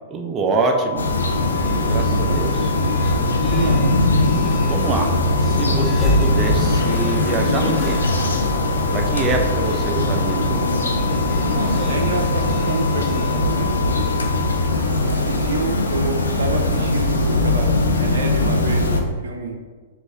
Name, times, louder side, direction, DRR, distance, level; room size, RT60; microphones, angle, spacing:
voice 1, 0.1-1.1 1.6-2.7 4.7-5.1 5.4-8.0 8.9-10.6, right 3 dB, 25° right, 2 dB, 0.5 m, -25 dB
sound 1, 0.6-14.6, left 11 dB, 65° left, 1.1 m, -32 dB
sound 2, 1.0-19.0, left 2 dB, 85° left, 0.5 m, -20 dB
sound 3, 1.4-14.2, right 1 dB, 25° left, 0.7 m, -31 dB
voice 2, 3.4-4.0 11.4-14.0 15.0-19.6, right 3 dB, 70° right, 3 dB, 0.6 m, -28 dB
4.7 x 2.5 x 3.8 m, 1.4 s
hypercardioid pair, 110°, 0 cm